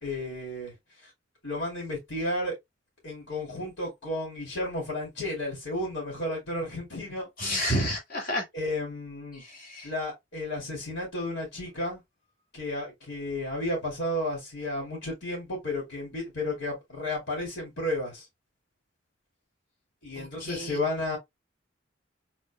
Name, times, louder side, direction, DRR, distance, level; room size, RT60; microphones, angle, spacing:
voice 1, 0.0-0.7 1.0-1.1 1.4-2.5 3.0-7.7 8.5-9.4 9.8-12.0 12.5-18.3 20.0-21.2, left 1 dB, 85° left, 3.2 m, -33 dB
voice 2, 7.4-8.4 9.3-9.9 20.1-20.8, equal, 50° left, 2.5 m, -30 dB
5.3 x 4.2 x 2.3 m
head